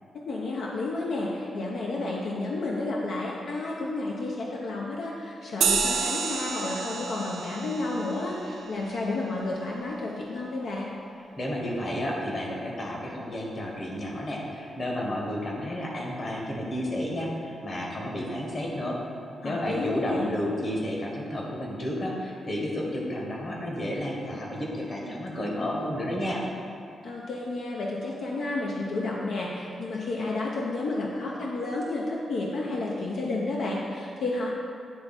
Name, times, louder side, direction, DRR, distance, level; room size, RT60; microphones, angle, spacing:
voice 1, 0.1-10.9 19.4-20.3 27.0-34.5, left 2 dB, 80° left, -3 dB, 0.6 m, -31 dB
sound 1, 5.6-10.5, right 6 dB, 85° right, 0.5 m, -31 dB
voice 2, 11.1-19.0 19.4-26.4, left 1 dB, 40° left, -2 dB, 1.3 m, -31 dB
9.5 x 3.4 x 4.1 m, 2.5 s
cardioid pair, 100°, 0 cm